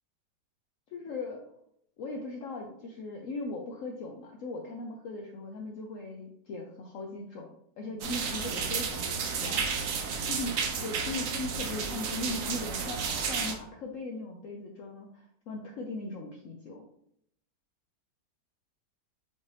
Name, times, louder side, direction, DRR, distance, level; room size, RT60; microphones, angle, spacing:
voice 1, 0.9-1.4 2.0-9.6 10.3-16.9, left 2 dB, 80° left, 1 dB, 0.7 m, -39 dB
sound 1, 8.0-13.6, right 5 dB, 70° right, 0.8 m, -32 dB
5.2 x 2.7 x 3.3 m, 0.72 s
omnidirectional pair, 2.0 m